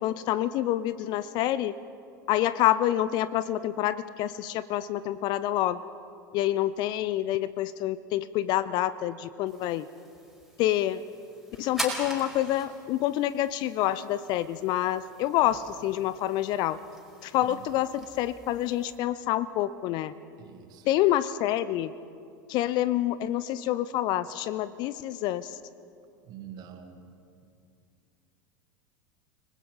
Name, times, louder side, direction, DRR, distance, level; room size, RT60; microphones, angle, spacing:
voice 1, 0.0-1.7 2.3-5.8 6.3-9.9 10.6-11.0 11.6-16.8 17.2-20.1 20.9-21.9 22.5-25.5, left 13 dB, 45° left, 16 dB, 0.7 m, -27 dB
sound 1, 9.5-19.0, right 1 dB, ahead, 4.9 m, -43 dB
voice 2, 17.4-17.7 20.4-20.9 26.2-27.0, right 9 dB, 40° right, 6 dB, 2.3 m, -45 dB
30.0 x 20.5 x 5.6 m, 2.5 s
figure-of-eight pair, 80°, 11 cm